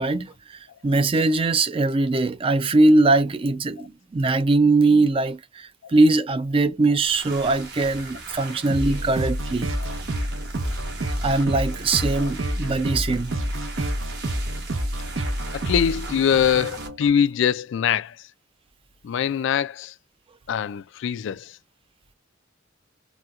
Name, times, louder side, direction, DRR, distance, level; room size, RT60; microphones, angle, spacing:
voice 1, 0.0-9.7 11.2-13.3, right 2 dB, 25° right, 0.4 m, -21 dB
sound 1, 7.0-16.9, right 3 dB, 55° right, 1.1 m, -39 dB
sound 2, 8.7-17.1, right 1 dB, 80° right, 1.0 m, -28 dB
voice 2, 15.5-18.1 19.0-19.9 20.5-21.5, left 8 dB, 65° left, 0.3 m, -23 dB
4.2 x 2.2 x 2.4 m
head